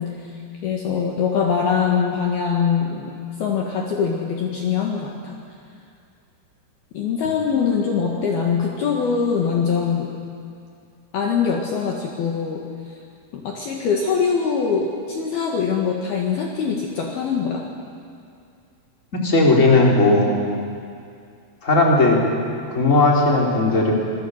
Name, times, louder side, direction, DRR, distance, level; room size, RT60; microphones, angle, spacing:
voice 1, 0.0-3.1 3.4-5.4 6.9-10.1 11.1-13.0 13.3-17.7, left 6 dB, 60° left, 0 dB, 3.2 m, -23 dB
voice 2, 19.1-20.3 21.6-22.2 22.7-23.9, left 2 dB, 15° left, -2 dB, 3.7 m, -16 dB
26.0 x 22.0 x 8.1 m, 2.4 s
omnidirectional pair, 5.6 m